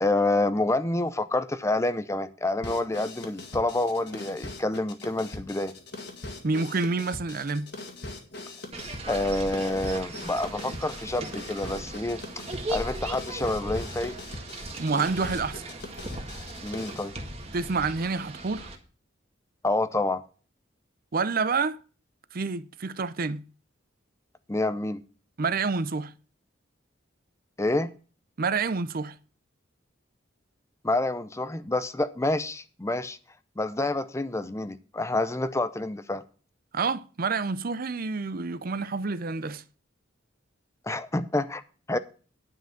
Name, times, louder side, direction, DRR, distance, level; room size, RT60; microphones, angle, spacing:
voice 1, 0.0-5.7 9.1-12.2 12.7-14.2 16.6-17.1 19.6-20.2 24.5-25.0 27.6-27.9 30.8-33.2 33.6-36.2 40.8-41.6 41.9-42.0, left 2 dB, 15° left, 0.6 m, -28 dB
sound 1, 2.6-17.1, left 2 dB, 60° left, 1.8 m, -41 dB
voice 2, 6.4-7.7 14.8-15.7 17.5-18.7 21.1-21.8 22.3-23.4 25.4-26.1 28.4-29.2 36.7-39.6, right 4 dB, 45° right, 0.6 m, -28 dB
sound 2, 8.7-18.8, right 1 dB, 30° right, 1.7 m, -38 dB
10.0 x 5.9 x 7.2 m
head